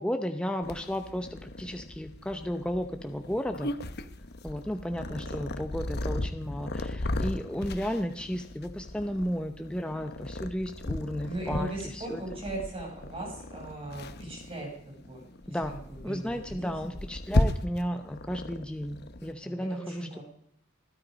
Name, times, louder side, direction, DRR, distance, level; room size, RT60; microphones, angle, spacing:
voice 1, 0.0-3.7 4.4-12.2 15.5-15.7 16.0-20.1, equal, 5° left, 5 dB, 0.8 m, -33 dB
Purr, 0.6-19.3, left 1 dB, 50° left, 1.0 m, -35 dB
voice 2, 5.1-5.5 5.7-5.9 11.2-14.7 15.0-15.2 15.5-15.6 15.9-16.7 19.4-20.2, right 1 dB, 25° right, -1 dB, 6.8 m, -39 dB
21.5 x 12.0 x 5.3 m, 0.71 s
head